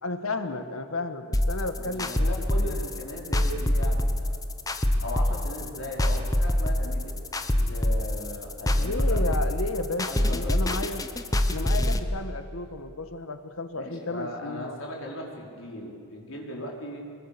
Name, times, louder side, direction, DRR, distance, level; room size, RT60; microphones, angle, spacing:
voice 1, 0.0-2.8 8.7-11.1 11.5-14.8, left 2 dB, 85° left, 8 dB, 1.6 m, -33 dB
sound 1, 1.3-12.0, left 1 dB, 15° left, 1.0 m, -25 dB
voice 2, 1.8-4.4 5.0-9.4 10.0-10.8 13.7-17.0, equal, 65° left, -1 dB, 5.0 m, -38 dB
25.5 x 23.0 x 6.9 m, 2.5 s
head